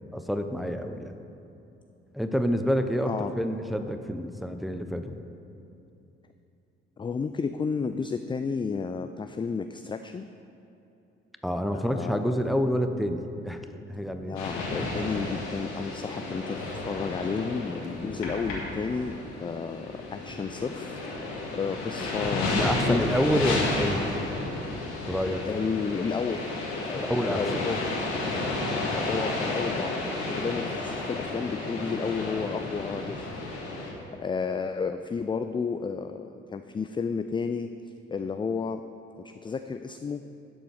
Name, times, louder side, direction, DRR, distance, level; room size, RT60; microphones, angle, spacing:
voice 1, 0.1-1.1 2.1-5.2 11.4-13.6 13.9-14.4 22.4-24.0 25.1-25.4 26.9-27.6, equal, ahead, 7 dB, 0.8 m, -28 dB
voice 2, 7.0-10.3 11.7-12.4 14.3-21.0 21.5-23.1 23.5-23.7 25.4-27.8 28.9-33.4 34.1-37.7 38.1-38.8 39.2-40.3, left 5 dB, 15° left, 9 dB, 0.4 m, -32 dB
sound 1, 14.4-33.9, left 2 dB, 75° left, 1.9 m, -32 dB
11.5 x 7.7 x 4.8 m, 2.8 s
figure-of-eight pair, 45°, 32 cm